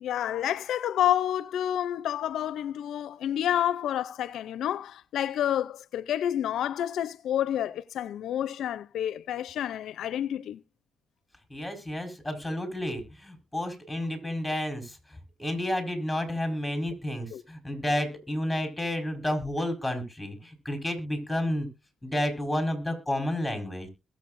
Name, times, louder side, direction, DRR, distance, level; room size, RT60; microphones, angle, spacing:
voice 1, 0.0-10.6 17.3-17.4, left 11 dB, 75° left, 0.5 m, -29 dB
voice 2, 11.5-21.7 22.0-23.9, left 1 dB, 5° left, 4.6 m, -31 dB
21.5 x 7.4 x 2.5 m
cardioid pair, 90°, 0 cm